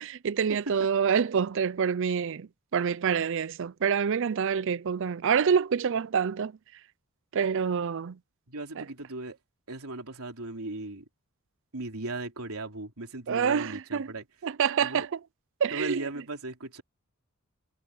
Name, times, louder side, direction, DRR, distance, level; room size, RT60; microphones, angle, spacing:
voice 1, 0.0-6.5 7.3-8.2 8.8-8.9 13.3-14.1 14.4-15.2 15.6-16.0, right 7 dB, 60° right, 0.5 m, -27 dB
voice 2, 8.5-9.4 9.7-11.0 11.7-14.2 14.8-15.1 15.7-16.8, right 2 dB, 85° right, 3.4 m, -37 dB
head